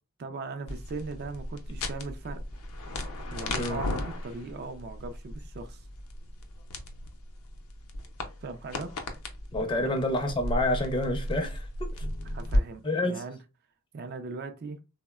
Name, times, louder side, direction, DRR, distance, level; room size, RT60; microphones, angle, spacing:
voice 1, 0.2-2.4 3.3-5.9 8.4-8.9 9.8-9.9 12.3-13.4 13.9-14.8, right 4 dB, 45° right, 0.3 m, -39 dB
sound 1, 0.7-12.6, left 1 dB, 70° left, 0.5 m, -35 dB
voice 2, 9.5-12.1 12.8-13.2, left 1 dB, 20° left, 0.5 m, -28 dB
3.5 x 2.0 x 2.2 m
head